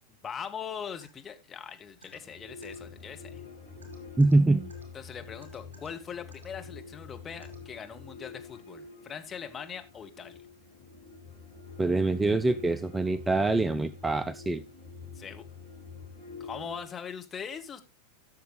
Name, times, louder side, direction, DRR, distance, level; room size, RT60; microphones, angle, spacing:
voice 1, 0.2-3.4 4.9-10.4 15.1-15.4 16.4-17.8, left 7 dB, 20° left, 5 dB, 1.4 m, -41 dB
sound 1, 1.0-1.1 2.0-2.2 2.6-2.8 3.8-4.3 4.7-4.8 5.4-5.9 6.3-6.5 7.4-7.6, right 5 dB, 70° right, 3.3 m, -53 dB
sound 2, 2.1-16.8, left 4 dB, 70° left, 4.6 m, -46 dB
voice 2, 4.2-4.7 11.8-14.6, right 2 dB, 10° right, 14 dB, 0.4 m, -24 dB
15.0 x 6.7 x 3.2 m, 0.24 s
figure-of-eight pair, 90°, 0 cm